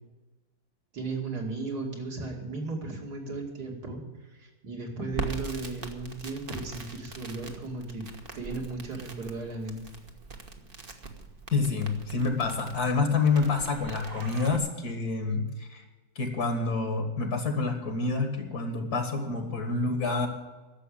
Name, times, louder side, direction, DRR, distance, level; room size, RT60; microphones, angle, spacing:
voice 1, 0.9-8.1 8.3-9.8, right 3 dB, 65° right, 0 dB, 3.0 m, -35 dB
Crackle, 5.1-14.6, right 2 dB, 35° right, 1.3 m, -42 dB
voice 2, 11.5-15.8 16.2-20.3, left 4 dB, 60° left, 5 dB, 2.3 m, -28 dB
11.5 x 7.4 x 10.0 m, 1.2 s
omnidirectional pair, 1.9 m